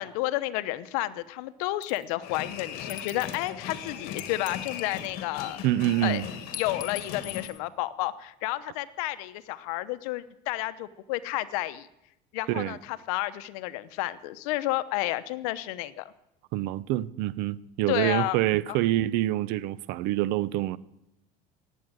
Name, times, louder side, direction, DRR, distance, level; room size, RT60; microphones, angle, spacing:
voice 1, 0.0-5.6 6.0-6.2 6.6-11.9 12.3-16.1 17.9-18.4 18.7-18.8, left 17 dB, 85° left, 0.9 m, -31 dB
sound 1, 1.8-2.1 2.9-3.5 4.2-5.4 6.5-7.6, left 13 dB, 50° left, 1.3 m, -42 dB
sound 2, 2.2-7.5, left 8 dB, 65° left, 2.2 m, -38 dB
voice 2, 5.6-6.3 12.5-12.8 16.5-20.8, right 15 dB, 70° right, 0.7 m, -26 dB
18.0 x 8.3 x 9.1 m
cardioid pair, 145°, 18 cm